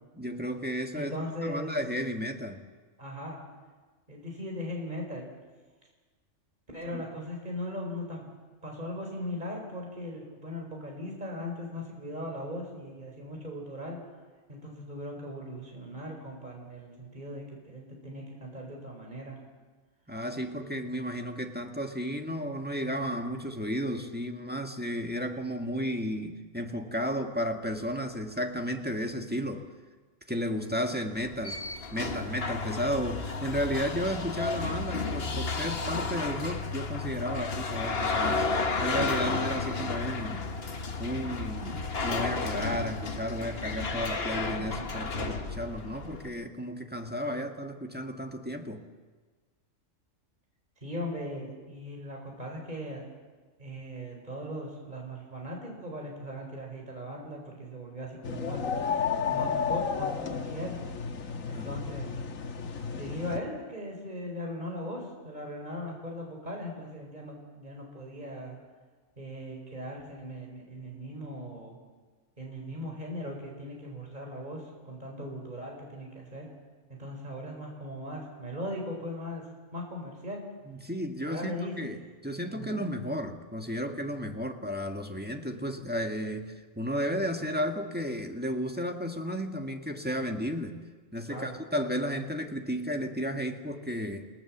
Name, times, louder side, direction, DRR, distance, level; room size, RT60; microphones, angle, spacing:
voice 1, 0.1-2.6 6.9-7.1 20.1-29.7 30.3-31.6 31.9-40.5 41.0-48.8 61.5-61.8 80.7-90.8 91.1-94.3, equal, 5° right, 3 dB, 1.6 m, -33 dB
voice 2, 0.9-1.7 3.0-3.4 4.1-5.3 6.7-8.3 8.6-14.0 14.5-19.4 50.8-53.1 53.6-58.6 59.3-60.8 61.5-62.1 62.9-68.6 69.2-71.8 72.4-76.5 77.0-79.4 79.7-80.4 81.2-81.7 82.5-82.8 91.3-91.6, left 1 dB, 35° right, 0 dB, 4.5 m, -39 dB
sound 1, 31.1-46.3, left 4 dB, 50° left, 1.6 m, -32 dB
sound 2, 58.2-63.4, left 6 dB, 90° left, 1.7 m, -32 dB
29.0 x 18.0 x 7.3 m, 1.4 s
omnidirectional pair, 1.4 m